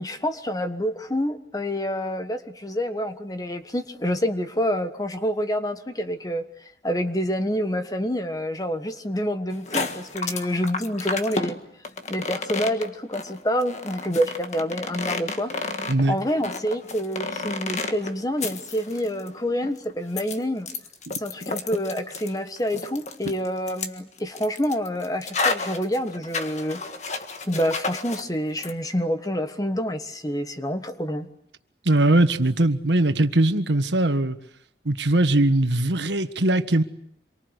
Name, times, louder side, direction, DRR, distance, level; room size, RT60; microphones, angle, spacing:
voice 1, 0.0-6.5 6.8-11.6 12.1-15.5 16.1-20.7 21.2-26.8 27.5-31.3, equal, 20° left, 1.4 m, -27 dB
sound 1, 9.5-28.3 28.6-28.7, left 3 dB, 40° left, 1.7 m, -31 dB
voice 2, 31.8-34.4 34.8-36.8, right 1 dB, 85° right, 1.5 m, -20 dB
27.0 x 24.0 x 8.2 m
head